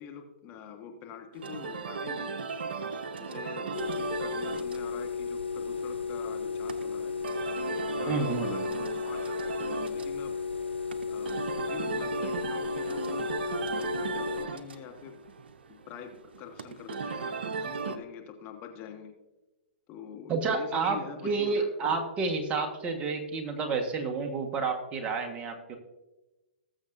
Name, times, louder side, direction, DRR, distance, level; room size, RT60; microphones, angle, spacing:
voice 1, 0.0-2.5 3.2-7.2 7.7-10.4 11.1-15.2 15.7-19.1 19.9-21.7, left 7 dB, 30° left, 4 dB, 1.4 m, -45 dB
sound 1, 1.3-18.0, right 5 dB, 70° right, 0.8 m, -37 dB
sound 2, 3.7-14.5, left 5 dB, 90° left, 0.7 m, -34 dB
voice 2, 8.1-8.7 20.3-21.0 21.2-25.8, right 4 dB, 20° right, 4 dB, 1.4 m, -30 dB
19.5 x 7.3 x 2.6 m, 1.1 s
hypercardioid pair, 125°, 6 cm